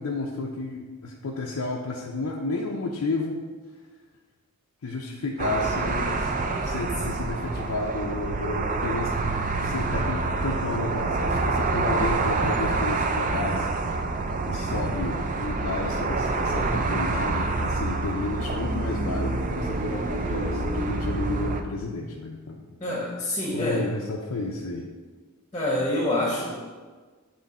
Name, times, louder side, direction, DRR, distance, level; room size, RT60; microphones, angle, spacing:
voice 1, 0.0-3.5 4.8-6.3 6.6-9.1 9.6-13.7 14.5-22.6 23.3-24.9, left 3 dB, 80° left, -2 dB, 0.6 m, -32 dB
sound 1, 5.4-21.6, right 3 dB, 35° right, 0.4 m, -27 dB
voice 2, 22.8-23.9 25.5-26.6, left 1 dB, 20° left, -3 dB, 0.9 m, -26 dB
9.2 x 3.1 x 4.2 m, 1.4 s
head